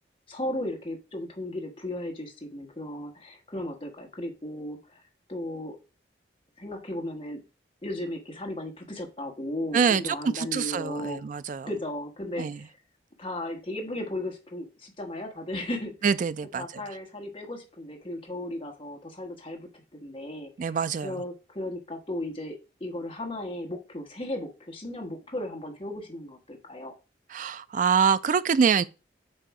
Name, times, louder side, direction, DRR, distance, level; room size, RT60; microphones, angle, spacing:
voice 1, 0.3-5.0 5.3-5.8 6.6-7.4 7.8-11.2 11.7-12.7 13.2-15.9 16.5-19.7 20.0-20.7 21.0-26.9, left 1 dB, 30° left, 1.3 m, -35 dB
voice 2, 9.7-11.7 12.4-12.6 16.0-16.6 20.6-21.1 27.3-28.8, right 6 dB, 45° right, 0.3 m, -25 dB
7.6 x 2.7 x 4.7 m
head